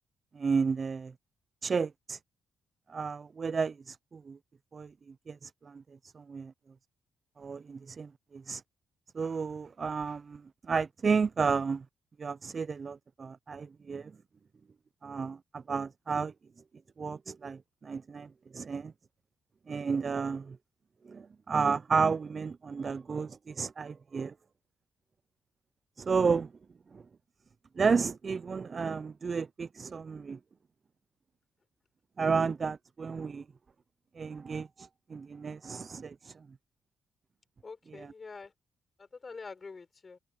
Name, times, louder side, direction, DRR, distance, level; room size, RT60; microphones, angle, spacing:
voice 1, 0.3-1.1 1.6-2.2 2.9-4.4 4.7-4.9 5.3-5.8 6.1-6.5 7.4-8.6 9.1-10.4 10.7-11.8 12.2-14.1 15.0-16.3 17.0-18.9 19.7-20.6 21.1-24.3 26.0-26.5 26.9-27.0 27.8-30.4 32.2-33.4 34.2-36.3 37.9-38.1, right 5 dB, 45° right, 0.5 m, -32 dB
voice 2, 37.6-38.5 39.0-40.2, left 4 dB, 40° left, 5.8 m, -46 dB
supercardioid pair, 60°, 0 cm